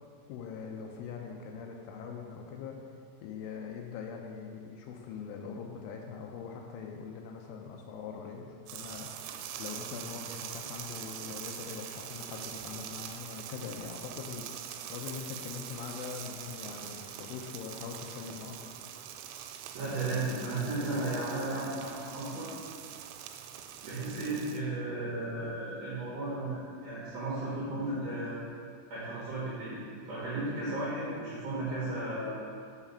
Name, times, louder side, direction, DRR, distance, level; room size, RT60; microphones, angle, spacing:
voice 1, 0.3-2.8 3.2-9.1 9.6-18.8, left 6 dB, 85° left, 2 dB, 2.9 m, -42 dB
sound 1, 8.7-24.6, right 10 dB, 90° right, 3.3 m, -43 dB
voice 2, 19.7-22.5 23.8-28.4 28.9-32.5, right 2 dB, 70° right, -9 dB, 1.9 m, -34 dB
7.2 x 5.7 x 5.5 m, 2.2 s
omnidirectional pair, 6.0 m